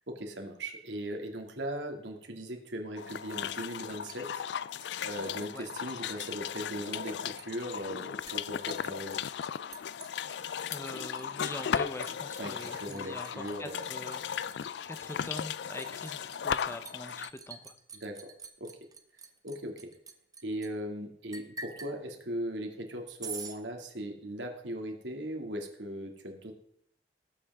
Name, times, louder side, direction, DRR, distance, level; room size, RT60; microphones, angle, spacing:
voice 1, 0.1-4.4 5.0-9.2 12.4-13.8 18.0-18.2 18.6-18.7 19.4-19.9 20.4-26.5, equal, 75° right, 2 dB, 2.5 m, -38 dB
sound 1, 3.0-17.3, left 8 dB, 65° left, 0.4 m, -36 dB
Liquid, 3.7-5.6 5.9-6.5 6.8-20.7 21.3-21.9 23.2-23.6, right 5 dB, 20° right, 1.0 m, -47 dB
voice 2, 10.7-14.2 14.8-17.7, left 1 dB, 15° left, 8 dB, 0.8 m, -43 dB
19.0 x 8.7 x 3.6 m, 0.67 s
head